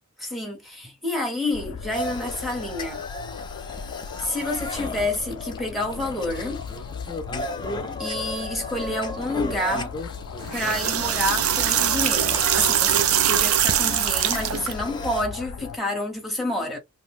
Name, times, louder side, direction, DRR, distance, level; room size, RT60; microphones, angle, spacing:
voice 1, 0.2-3.0 4.2-6.6 8.0-9.9 10.5-16.8, left 1 dB, ahead, 0.8 m, -29 dB
sound 1, 1.5-15.8, left 6 dB, 90° left, 0.3 m, -37 dB
sound 2, 1.9-15.2, left 1 dB, 20° left, 0.4 m, -35 dB
sound 3, 10.4-14.7, right 10 dB, 75° right, 0.4 m, -22 dB
2.6 x 2.1 x 3.4 m
head